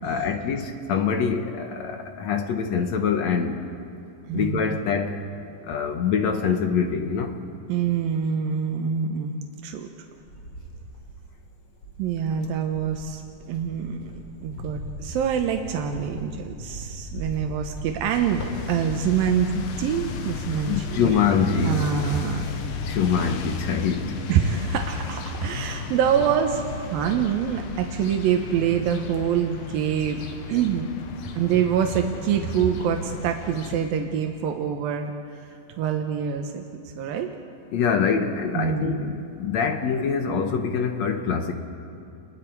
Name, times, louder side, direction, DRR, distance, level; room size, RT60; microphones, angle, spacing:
voice 1, 0.0-3.7 4.3-5.2 5.6-7.4 20.7-21.8 22.8-24.2 25.4-25.9 37.7-41.5, left 6 dB, 65° left, 5 dB, 2.0 m, -25 dB
voice 2, 4.2-4.6 7.7-9.3 9.6-9.9 12.0-13.2 13.5-14.1 14.4-21.2 21.6-22.5 24.3-26.6 26.9-30.2 30.5-30.9 31.3-35.1 35.8-36.6 37.0-37.3 38.5-39.1, right 8 dB, 90° right, 4 dB, 2.8 m, -25 dB
Cricket, 9.9-11.3 11.8-24.7 25.0-25.6, right 1 dB, 35° left, 4.8 m, -39 dB
sound 1, 18.1-33.7, left 6 dB, 80° left, 3.1 m, -35 dB
29.5 x 21.5 x 4.7 m, 2.4 s
omnidirectional pair, 4.0 m